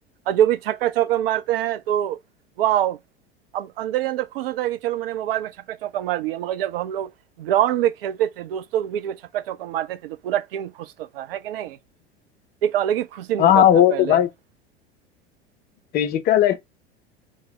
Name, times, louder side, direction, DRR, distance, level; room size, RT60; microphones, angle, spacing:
voice 1, 0.3-2.2 2.6-3.0 3.5-7.1 7.4-11.8 12.6-14.2, right 11 dB, 60° right, 0.5 m, -25 dB
voice 2, 13.4-14.3 15.9-16.6, left 11 dB, 30° left, 0.5 m, -16 dB
4.5 x 2.1 x 3.3 m
figure-of-eight pair, 80°, 33 cm